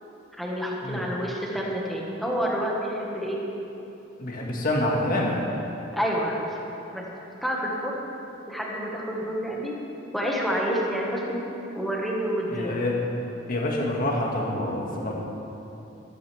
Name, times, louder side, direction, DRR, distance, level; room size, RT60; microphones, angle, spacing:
voice 1, 0.4-3.4 5.9-6.5 6.9-7.1 7.4-7.9 8.5-9.7 10.1-11.4 11.7-12.8, equal, ahead, -3 dB, 1.6 m, -28 dB
voice 2, 4.2-5.3 12.5-13.0 13.5-15.1, left 1 dB, 45° left, -2 dB, 1.9 m, -26 dB
13.0 x 13.0 x 3.5 m, 2.9 s
head